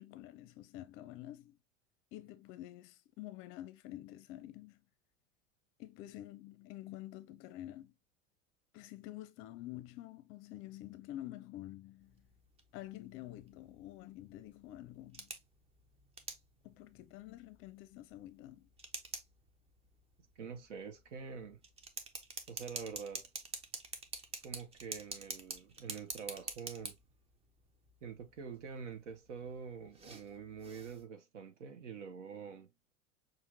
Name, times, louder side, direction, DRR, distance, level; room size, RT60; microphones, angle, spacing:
voice 1, 0.0-1.6 2.1-4.8 5.8-7.9 8.7-12.3 12.7-15.3 16.6-18.7, left 14 dB, 30° left, 0.6 m, -48 dB
sound 1, 12.0-31.0, right 4 dB, 15° right, 0.6 m, -49 dB
voice 2, 20.4-21.6 22.5-23.3 24.4-27.0 28.0-32.7, right 6 dB, 65° right, 0.8 m, -46 dB
5.7 x 2.5 x 2.8 m
figure-of-eight pair, 80°, 39 cm